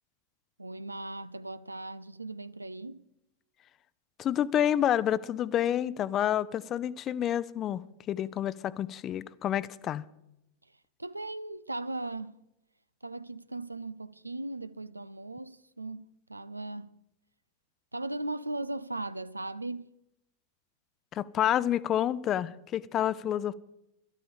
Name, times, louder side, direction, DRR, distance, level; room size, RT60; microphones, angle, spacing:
voice 1, 0.6-3.0 11.0-12.4 13.0-16.9 17.9-19.9, right 2 dB, 85° right, 0.5 m, -38 dB
voice 2, 4.2-10.0 21.1-23.5, left 10 dB, 30° left, 0.6 m, -29 dB
12.5 x 12.0 x 6.8 m
figure-of-eight pair, 90°, 0 cm